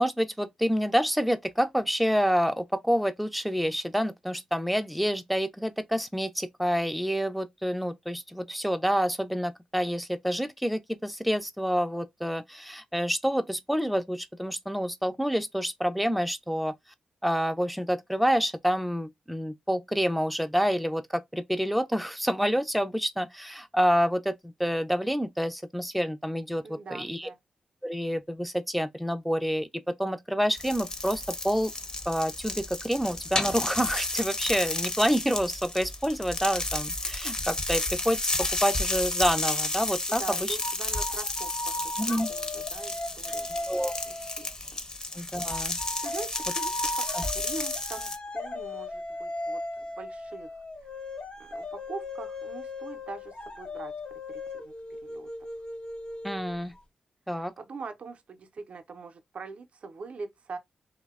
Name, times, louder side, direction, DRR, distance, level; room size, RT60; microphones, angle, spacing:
voice 1, 0.0-16.7 17.2-27.3 27.8-29.7 30.0-31.7 32.1-40.6 42.0-42.3 43.7-43.9 45.1-45.8 47.1-47.2 56.2-56.7 57.3-57.5, equal, ahead, 0.4 m, -28 dB
voice 2, 26.6-27.4 40.2-42.0 42.3-43.7 44.1-44.8 46.0-50.6 51.4-53.9 54.3-54.7 55.0-55.3 57.3-60.6, right 4 dB, 65° right, 0.4 m, -43 dB
sound 1, 30.6-48.2, left 2 dB, 35° left, 0.7 m, -32 dB
sound 2, 40.6-44.5 45.5-56.8, left 2 dB, 50° left, 1.0 m, -37 dB
2.6 x 2.0 x 2.3 m
cardioid pair, 50°, 2 cm